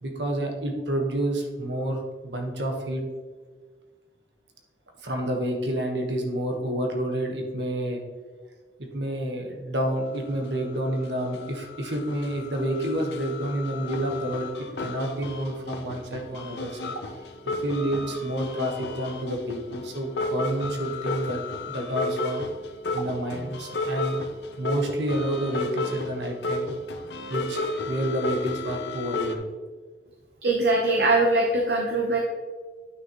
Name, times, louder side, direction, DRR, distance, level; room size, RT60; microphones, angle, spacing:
voice 1, 0.0-3.1 5.0-8.0 8.8-16.9 17.2-17.3 17.6-22.4 22.9-24.2 24.6-26.7 27.3-29.5, right 1 dB, 85° right, 2 dB, 1.4 m, -29 dB
sound 1, 9.8-9.9 10.3-29.3, left 2 dB, 75° left, 0.7 m, -33 dB
voice 2, 30.4-32.2, right 2 dB, 65° right, -1 dB, 0.9 m, -22 dB
9.6 x 6.2 x 3.0 m, 1.5 s
head